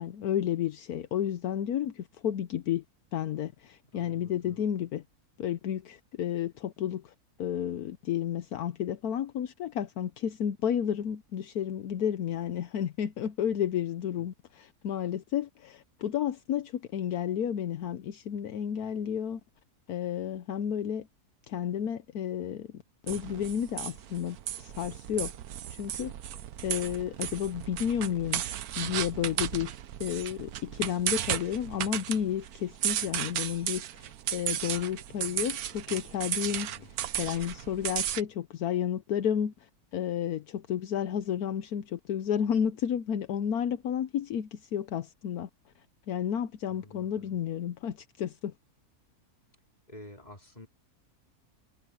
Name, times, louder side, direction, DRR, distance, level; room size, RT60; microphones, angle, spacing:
voice 1, 0.0-2.8 3.1-5.0 5.4-7.1 7.4-19.4 19.9-21.1 21.5-22.7 23.1-25.3 25.7-26.1 26.6-28.4 28.8-29.7 30.0-36.7 37.2-39.5 39.9-45.5 46.1-48.5, left 9 dB, 75° left, 1.3 m, -31 dB
voice 2, 3.9-4.7 36.4-36.9 46.7-47.3 49.9-50.7, left 1 dB, 25° left, 4.6 m, -50 dB
sound 1, 23.1-38.2, right 11 dB, 75° right, 1.3 m, -35 dB
omnidirectional pair, 1.6 m